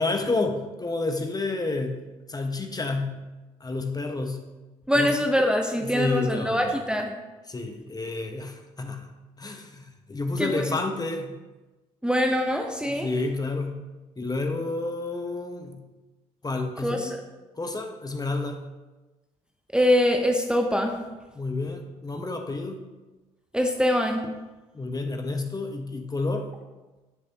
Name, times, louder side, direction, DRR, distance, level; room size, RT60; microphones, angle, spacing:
voice 1, 0.0-2.0 2.3-3.2 3.6-4.4 4.9-5.1 5.8-6.8 7.5-9.1 9.4-11.3 12.9-13.8 14.2-15.8 16.4-17.2 17.6-18.7 21.3-22.8 24.7-26.5, left 3 dB, 20° left, 4 dB, 1.1 m, -30 dB
voice 2, 4.9-7.1 10.4-10.8 12.0-13.1 16.8-17.2 19.7-21.0 23.5-24.2, equal, 5° right, 3 dB, 0.9 m, -23 dB
10.5 x 6.7 x 3.0 m, 1.2 s
hypercardioid pair, 50°, 17 cm